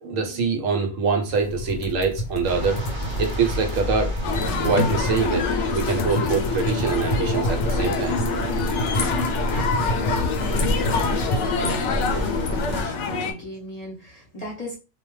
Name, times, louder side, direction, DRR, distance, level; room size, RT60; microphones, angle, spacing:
voice 1, 0.0-2.8 3.2-4.1 4.6-8.9, right 4 dB, 75° right, 1.0 m, -24 dB
sound 1, 1.3-11.4, equal, 90° left, 1.0 m, -30 dB
sound 2, 2.4-12.8, equal, 45° right, 0.7 m, -31 dB
sound 3, 4.2-13.3, left 4 dB, 65° left, 0.8 m, -26 dB
voice 2, 9.5-14.8, right 1 dB, 35° left, 0.8 m, -38 dB
2.3 x 2.2 x 3.0 m
omnidirectional pair, 1.5 m